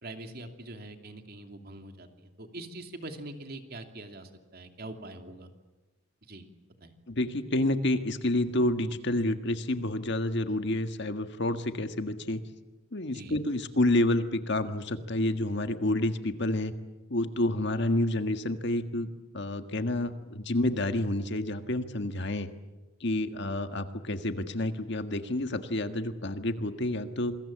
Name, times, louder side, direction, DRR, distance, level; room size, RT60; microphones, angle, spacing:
voice 1, 0.0-5.5 6.2-6.5 6.8-6.9 13.1-13.4, right 2 dB, 50° right, 5 dB, 2.8 m, -43 dB
voice 2, 7.1-12.4 12.9-16.7 17.1-19.1 19.3-22.5 23.0-27.4, left 1 dB, 60° left, 8 dB, 1.7 m, -29 dB
27.5 x 21.5 x 8.7 m, 1.1 s
head